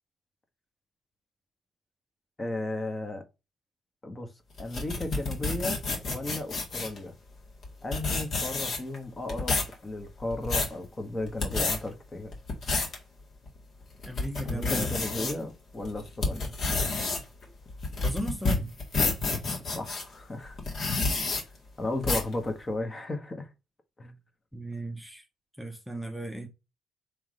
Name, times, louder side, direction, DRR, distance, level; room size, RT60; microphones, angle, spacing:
voice 1, 2.4-3.2 4.0-4.3 4.6-5.8 6.0-7.1 7.8-12.4 14.4-16.5 19.7-20.6 21.2-21.3 21.8-23.5 24.0-24.1, left 2 dB, 25° left, 1.1 m, -35 dB
sound 1, 4.6-7.0 7.6-7.7 7.9-9.0 9.3-9.7 10.2-10.7 11.3-11.8 12.3-13.0 13.5-13.6 14.0-15.3 15.8-20.0 20.6-21.4 22.0-22.3, left 3 dB, 60° left, 1.8 m, -29 dB
voice 2, 14.1-14.9 15.1-15.5 18.0-18.8 24.5-25.2 25.6-26.5, right 1 dB, ahead, 0.7 m, -36 dB
3.5 x 3.2 x 4.8 m
cardioid pair, 90°, 0 cm